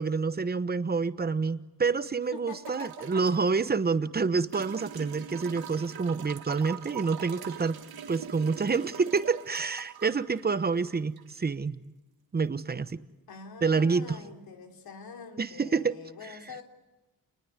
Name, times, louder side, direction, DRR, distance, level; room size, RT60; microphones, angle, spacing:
voice 1, 0.0-7.8 8.1-11.8 12.3-13.0 13.6-14.2 15.4-15.9, right 4 dB, 25° right, 13 dB, 1.0 m, -28 dB
voice 2, 2.3-3.3 13.3-16.6, left 5 dB, 80° left, 4 dB, 3.3 m, -45 dB
sound 1, 2.6-3.5 4.5-11.5 12.9-13.0, right 9 dB, 80° right, 1.8 m, -43 dB
28.5 x 20.0 x 9.6 m, 1.1 s
cardioid pair, 105°, 36 cm